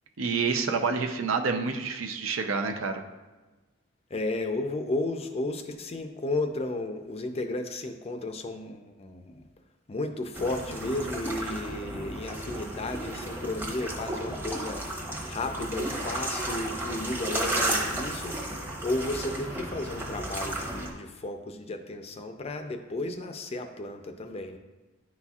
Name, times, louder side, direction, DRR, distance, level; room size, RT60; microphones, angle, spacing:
voice 1, 0.2-3.0, right 5 dB, 75° right, 5 dB, 0.6 m, -28 dB
voice 2, 4.1-9.4 9.9-14.8 15.3-24.6, left 2 dB, 30° left, 6 dB, 0.5 m, -33 dB
sound 1, 10.3-20.9, right 1 dB, 10° right, 0.8 m, -33 dB
9.9 x 4.1 x 2.4 m, 1.2 s
head